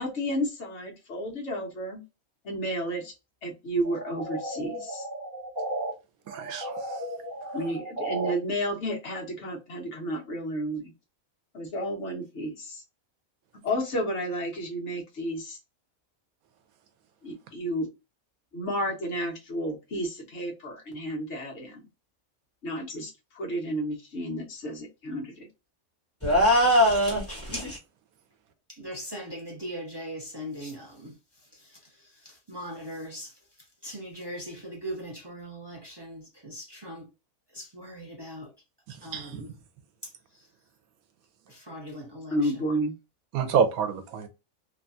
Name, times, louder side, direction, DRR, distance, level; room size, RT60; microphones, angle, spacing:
voice 1, 0.0-2.0 2.4-3.1 3.4-5.0 7.5-10.9 11.5-12.8 13.6-15.6 17.2-17.9 18.5-21.8 22.6-25.5 42.3-42.9, equal, 55° left, 1.3 m, -31 dB
sound 1, 3.8-5.9 6.3-8.3, right 1 dB, 20° right, 1.0 m, -34 dB
voice 2, 6.3-6.8 38.9-39.4 43.3-44.3, right 6 dB, 85° right, 1.1 m, -28 dB
sound 2, 26.2-27.8, equal, 10° left, 1.1 m, -21 dB
voice 3, 28.8-31.1 32.5-33.3 33.8-37.1 37.5-38.5 39.0-39.5 41.5-42.6, equal, 40° right, 0.3 m, -39 dB
3.2 x 2.2 x 2.6 m
omnidirectional pair, 1.5 m